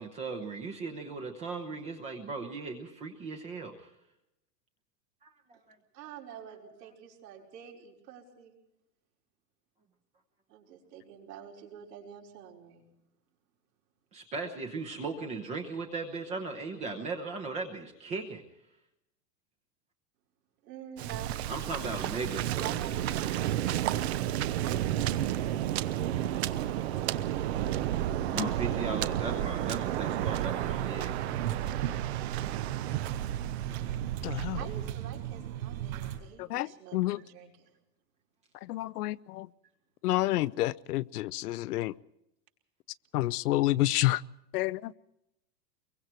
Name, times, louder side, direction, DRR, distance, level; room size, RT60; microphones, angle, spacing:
voice 1, 0.0-3.9 5.2-5.8 14.1-18.4 21.5-22.8 28.3-31.1, right 4 dB, 15° right, 4 dB, 0.9 m, -37 dB
voice 2, 5.9-8.6 10.5-12.9 20.6-21.3 22.5-23.6 24.6-25.2 34.5-37.7, right 9 dB, 75° right, -1 dB, 5.3 m, -47 dB
Waves surf, 21.0-34.9, right 12 dB, 40° right, 0.8 m, -32 dB
sound 1, 30.6-36.2, right 12 dB, 60° right, 5.1 m, -37 dB
voice 3, 34.2-34.6 36.4-37.2 38.7-39.5 40.0-41.9 43.1-44.2 44.5-44.9, left 16 dB, 65° left, 18 dB, 0.7 m, -29 dB
25.0 x 23.0 x 4.5 m, 0.85 s
supercardioid pair, 180°, 49 cm